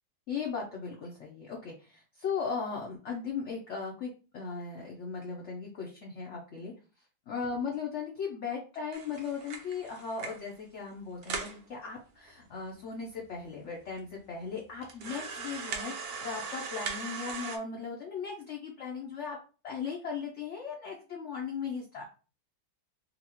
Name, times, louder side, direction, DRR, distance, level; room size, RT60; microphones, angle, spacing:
voice 1, 0.3-6.7 7.3-19.4 19.6-22.0, left 5 dB, 60° left, -1 dB, 0.8 m, -37 dB
sound 1, 8.9-10.5 10.9-11.0 11.2-11.6 12.3-12.4 12.6-12.7 13.4-13.5 14.0-14.1 14.8-17.6, right 5 dB, 80° right, 0.5 m, -39 dB
4.0 x 2.4 x 2.9 m, 0.36 s
omnidirectional pair, 1.8 m